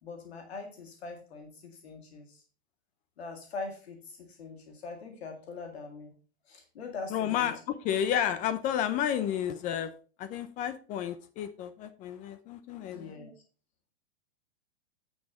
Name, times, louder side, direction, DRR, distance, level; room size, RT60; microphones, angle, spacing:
voice 1, 0.0-2.4 3.2-6.1 6.5-7.5 12.9-13.3, left 4 dB, 80° left, 4 dB, 1.9 m, -42 dB
voice 2, 7.1-9.9 10.2-13.1, left 10 dB, 25° left, 13 dB, 0.5 m, -31 dB
9.1 x 6.4 x 3.6 m, 0.38 s
hypercardioid pair, 135°, 31 cm